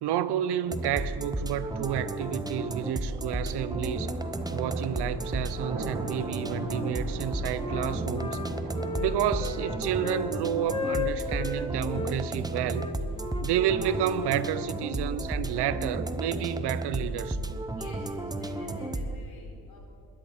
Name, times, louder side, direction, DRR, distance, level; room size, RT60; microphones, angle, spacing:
voice 1, 0.0-4.1 4.5-8.4 9.0-12.9 13.4-17.6, right 10 dB, 85° right, 0.7 m, -30 dB
sound 1, 0.7-19.2, right 1 dB, 10° right, 0.7 m, -33 dB
sound 2, 1.1-15.0, right 2 dB, 45° right, 3.0 m, -43 dB
Wind instrument woodwind instrument, 6.0-6.9 7.2-10.3 10.6-12.1 12.7-15.2, left 4 dB, 15° left, 1.1 m, -36 dB
voice 2, 17.6-19.9, left 2 dB, 70° left, 4.2 m, -51 dB
21.0 x 10.5 x 4.2 m
cardioid pair, 110°, 39 cm